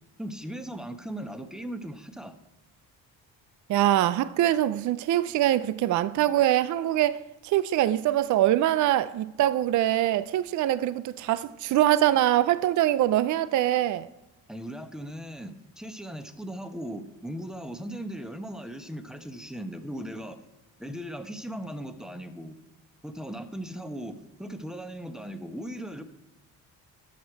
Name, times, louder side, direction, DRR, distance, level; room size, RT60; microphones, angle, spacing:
voice 1, 0.2-2.4 14.5-20.4 20.8-22.6 23.0-26.0, right 1 dB, ahead, 0.9 m, -38 dB
voice 2, 3.7-14.1, right 13 dB, 50° right, 0.5 m, -23 dB
12.0 x 6.5 x 4.7 m
supercardioid pair, 75°, 37 cm